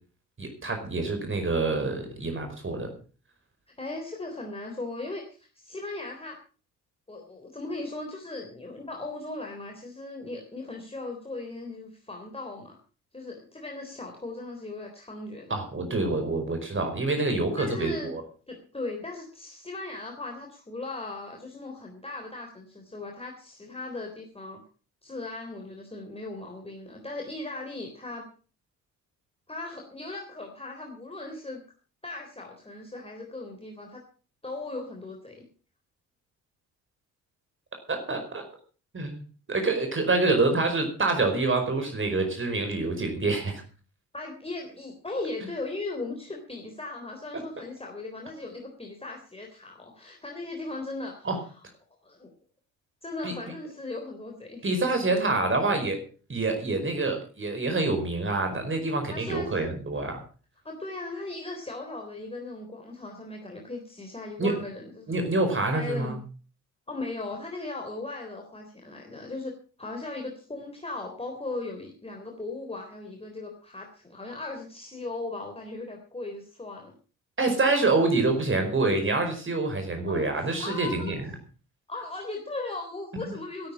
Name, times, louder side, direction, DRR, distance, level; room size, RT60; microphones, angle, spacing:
voice 1, 0.4-2.9 15.5-18.2 37.9-38.4 38.9-39.2 39.5-43.6 51.2-51.4 53.2-53.3 54.6-56.0 56.3-60.2 64.4-64.5 65.1-66.2 77.4-81.3, right 3 dB, 25° right, 5 dB, 4.9 m, -26 dB
voice 2, 3.8-6.4 7.1-12.8 13.1-15.6 17.6-18.1 18.5-24.6 25.0-28.3 29.5-31.6 32.0-34.0 34.4-35.5 44.1-51.3 52.0-52.3 53.0-54.7 59.1-59.7 60.6-65.2 65.7-66.2 66.9-69.5 69.8-76.9 80.1-81.1 81.9-83.7, left 2 dB, 15° left, 1 dB, 3.6 m, -38 dB
13.5 x 13.0 x 6.1 m, 0.39 s
figure-of-eight pair, 45°, 44 cm